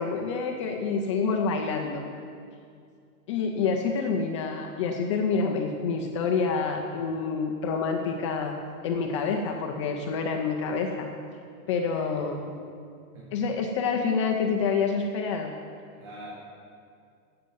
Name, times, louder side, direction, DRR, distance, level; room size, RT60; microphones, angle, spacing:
voice 1, 0.0-2.0 3.3-8.6 8.8-11.1 11.7-12.5 13.3-15.5, left 5 dB, 25° left, 2 dB, 0.4 m, -27 dB
voice 2, 11.6-12.3 13.1-13.3 15.9-16.3, right 1 dB, 45° right, -6 dB, 2.6 m, -45 dB
10.5 x 7.7 x 7.4 m, 2.3 s
supercardioid pair, 155°, 43 cm